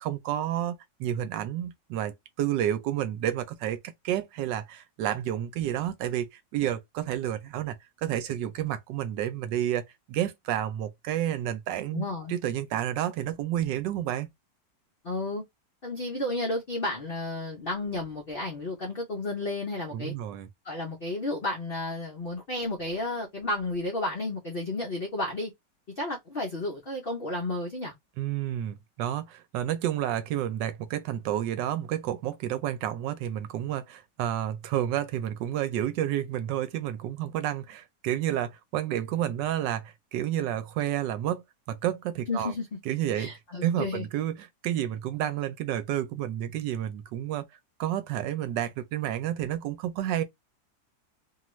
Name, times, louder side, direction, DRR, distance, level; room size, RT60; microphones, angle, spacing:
voice 1, 0.0-3.8 4.0-14.3 19.9-20.5 28.2-42.5 42.9-43.3 43.6-47.4 47.8-50.2, right 11 dB, 80° right, 1.2 m, -30 dB
voice 2, 11.9-12.3 15.0-15.4 15.8-20.1 20.6-25.5 26.0-27.9 42.3-42.7 43.1-44.0, left 2 dB, 80° left, 0.5 m, -32 dB
2.8 x 2.4 x 3.0 m
omnidirectional pair, 2.0 m